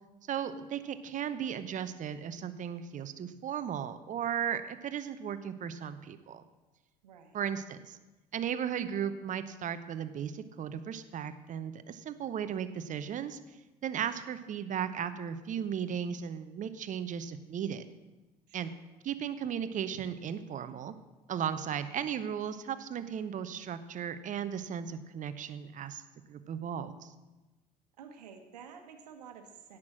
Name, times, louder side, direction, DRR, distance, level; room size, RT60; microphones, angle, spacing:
voice 1, 0.3-6.4 7.3-8.0 8.3-13.4 13.8-17.9 18.5-18.7 19.0-20.9 21.3-26.0 26.3-27.1, right 8 dB, 35° right, 12 dB, 0.9 m, -36 dB
voice 2, 7.0-7.4 18.5-18.8 28.0-29.8, right 7 dB, 70° right, 6 dB, 1.3 m, -51 dB
17.0 x 6.1 x 6.1 m, 1.1 s
figure-of-eight pair, 60°, 21 cm